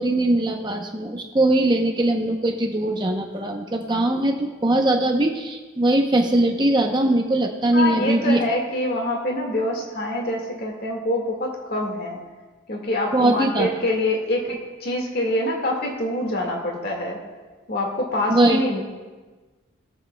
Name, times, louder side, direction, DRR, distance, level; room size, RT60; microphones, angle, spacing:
voice 1, 0.0-8.4 13.1-13.7 18.3-18.6, right 1 dB, 20° right, 2 dB, 0.7 m, -21 dB
voice 2, 7.7-12.2 12.7-17.2 17.7-18.8, left 1 dB, 45° left, 0 dB, 1.7 m, -25 dB
22.0 x 7.4 x 2.2 m, 1.3 s
head